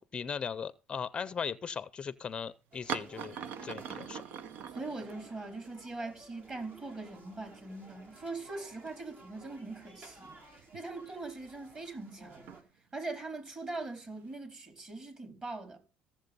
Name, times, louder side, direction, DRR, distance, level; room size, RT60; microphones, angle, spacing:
voice 1, 0.0-3.4 3.6-4.2, left 6 dB, 30° left, 0.5 m, -38 dB
sound 1, 2.7-12.6, right 2 dB, 55° right, 3.7 m, -55 dB
sound 2, 2.9-5.8 6.0-6.1 7.2-7.3 7.5-8.4 8.9-9.0 10.5-11.7 12.3-12.6 13.7-14.3, right 8 dB, 70° right, 0.7 m, -43 dB
voice 2, 4.7-12.5 12.9-15.8, right 3 dB, 30° right, 4.3 m, -41 dB
15.5 x 7.4 x 5.4 m
cardioid pair, 120°, 3 cm